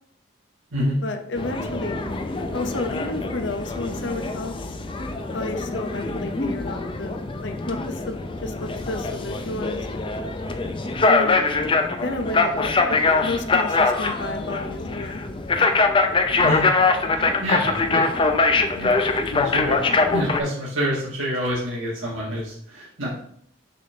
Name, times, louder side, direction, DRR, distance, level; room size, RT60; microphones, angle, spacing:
voice 1, 1.0-2.1 2.5-4.5 5.3-8.2 8.4-9.9 11.1-11.4 12.0-15.2, left 2 dB, 60° left, 6 dB, 0.7 m, -31 dB
sound 1, 1.4-20.4, left 3 dB, 25° left, 0.5 m, -23 dB
voice 2, 16.4-16.8 17.4-18.1 18.8-19.8 20.1-23.2, equal, 70° right, -6 dB, 1.7 m, -27 dB
6.6 x 3.5 x 5.5 m, 0.64 s
head